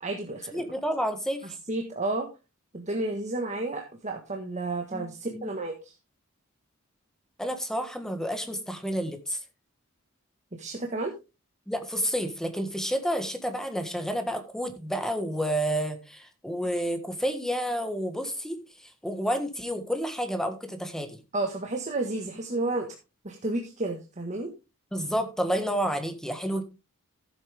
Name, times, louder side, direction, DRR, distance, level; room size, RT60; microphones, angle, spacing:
voice 1, 0.0-0.7 1.4-2.3 2.7-5.9 10.5-11.1 21.3-22.9 23.2-24.5, right 2 dB, 35° right, 3 dB, 1.6 m, -31 dB
voice 2, 0.5-1.6 4.9-5.5 7.4-9.4 11.7-18.6 19.0-21.2 24.9-26.6, equal, ahead, 7 dB, 1.6 m, -30 dB
14.0 x 8.1 x 3.5 m, 0.28 s
head